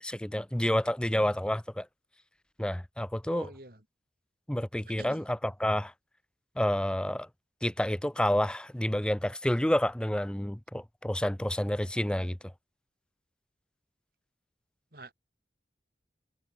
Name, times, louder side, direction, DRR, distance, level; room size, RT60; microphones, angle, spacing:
voice 1, 0.0-1.9 2.6-3.5 4.5-5.9 6.6-7.3 7.6-12.4, left 1 dB, 5° left, 0.4 m, -29 dB
voice 2, 3.2-3.8 5.0-5.2 14.9-15.1, right 2 dB, 55° right, 6.2 m, -46 dB
head